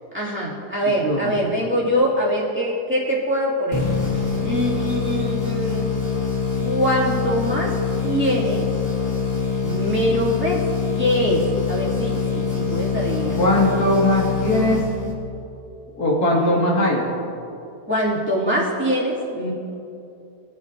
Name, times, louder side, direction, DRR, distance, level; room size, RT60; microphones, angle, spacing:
voice 1, 0.1-3.8 4.1-5.9 6.6-7.7 8.0-8.7 9.6-10.6 11.0-13.4 16.3-16.7 17.9-19.5, equal, 5° right, -7 dB, 2.5 m, -23 dB
voice 2, 1.0-1.3 13.4-14.8 16.0-17.1, left 1 dB, 65° left, -3 dB, 2.7 m, -19 dB
sound 1, 3.7-15.4, left 5 dB, 35° left, 2.5 m, -24 dB
20.5 x 9.2 x 2.7 m, 2.7 s
omnidirectional pair, 1.8 m